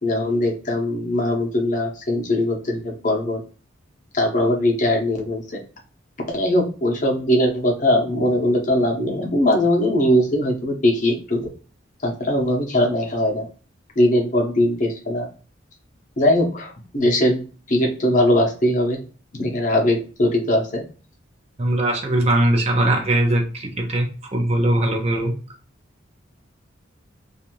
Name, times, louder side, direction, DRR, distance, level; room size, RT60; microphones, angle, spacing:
voice 1, 0.0-3.4 4.1-5.6 6.2-11.5 12.0-13.5 14.0-15.3 16.2-17.4 17.7-19.0 19.3-20.8, left 1 dB, 40° left, 0 dB, 0.8 m, -20 dB
voice 2, 21.6-25.3, right 1 dB, 30° right, 1 dB, 0.6 m, -20 dB
2.6 x 2.5 x 2.9 m, 0.37 s
head